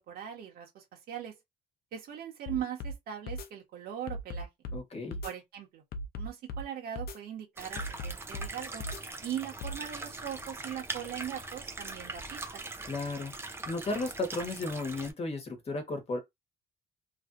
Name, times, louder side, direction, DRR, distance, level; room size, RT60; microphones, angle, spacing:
voice 1, 0.1-1.3 1.9-4.5 5.2-5.8 6.2-8.8 9.2-12.6, right 10 dB, 65° right, 1.5 m, -40 dB
sound 1, 2.5-3.0 3.3-3.5 4.1-4.8 5.1-5.3 5.9-6.6 7.0-7.2 7.8-8.5 8.8-9.0 9.6-9.8, equal, 65° left, 0.7 m, -37 dB
voice 2, 4.7-5.2 12.8-13.3 13.6-16.2, left 2 dB, 35° left, 1.3 m, -34 dB
sound 2, 7.6-15.1, right 2 dB, 15° right, 0.6 m, -41 dB
3.3 x 2.7 x 2.5 m
cardioid pair, 110°, 17 cm